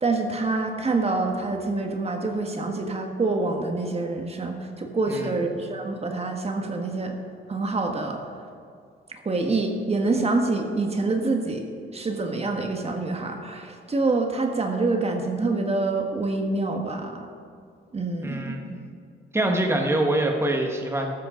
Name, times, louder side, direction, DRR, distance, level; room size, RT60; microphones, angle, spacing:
voice 1, 0.0-7.2 7.5-8.2 9.1-11.6 11.9-17.2 17.9-18.6, right 3 dB, 30° right, 3 dB, 1.6 m, -26 dB
voice 2, 18.2-18.8 19.3-21.1, right 1 dB, 15° right, 2 dB, 1.7 m, -25 dB
13.5 x 13.0 x 3.9 m, 2.3 s
cardioid pair, 90°, 20 cm